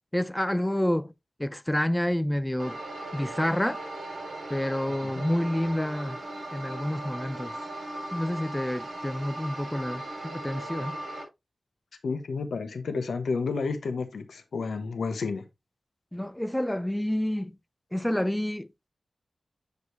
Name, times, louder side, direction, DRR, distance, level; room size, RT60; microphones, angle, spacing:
voice 1, 0.1-1.1 1.4-2.8 3.1-3.8 4.5-6.2 6.5-7.6 8.1-11.0 16.1-17.5 17.9-18.7, left 1 dB, 10° left, 0.4 m, -28 dB
sound 1, 2.6-11.2, right 1 dB, 60° right, 3.5 m, -38 dB
voice 2, 12.0-15.4, left 4 dB, 90° left, 1.1 m, -31 dB
8.1 x 5.2 x 3.1 m
wide cardioid pair, 70°, 0 cm